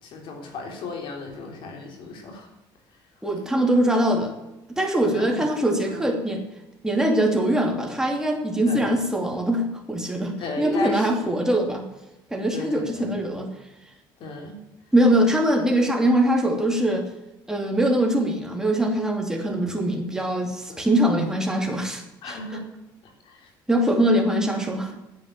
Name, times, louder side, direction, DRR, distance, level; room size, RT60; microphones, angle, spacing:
voice 1, 0.0-2.5 5.0-5.4 5.9-6.1 8.7-8.9 10.4-11.1 12.5-13.1 14.2-14.6 19.5-19.8 20.7-20.8 22.2-22.7 23.2-23.5, left 3 dB, 70° left, 2 dB, 3.7 m, -35 dB
voice 2, 3.2-4.3 4.7-6.5 6.8-11.9 12.3-13.5 14.9-17.1 17.5-22.4 23.7-24.9, right 1 dB, 5° right, 2 dB, 2.7 m, -22 dB
9.8 x 8.1 x 9.0 m, 0.98 s
cardioid pair, 105°, 9 cm